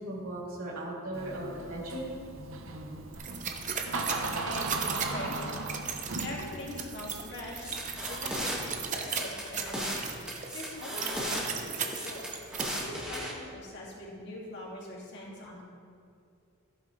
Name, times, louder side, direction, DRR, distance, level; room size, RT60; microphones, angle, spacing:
voice 1, 0.0-2.1, right 1 dB, 85° right, -5 dB, 3.0 m, -37 dB
Door, 1.1-8.8, right 2 dB, 65° right, 0.9 m, -38 dB
sound 1, 3.1-12.6, right 6 dB, 35° right, 0.8 m, -37 dB
voice 2, 3.9-5.4 5.8-5.9 6.2-9.9 10.3-12.3 12.8-15.6, left 1 dB, 55° left, -4 dB, 2.3 m, -43 dB
sound 2, 7.6-8.6 9.0-10.0 10.3-11.4 11.9-13.3, equal, 5° right, 1.8 m, -36 dB
15.0 x 8.9 x 3.3 m, 2.4 s
head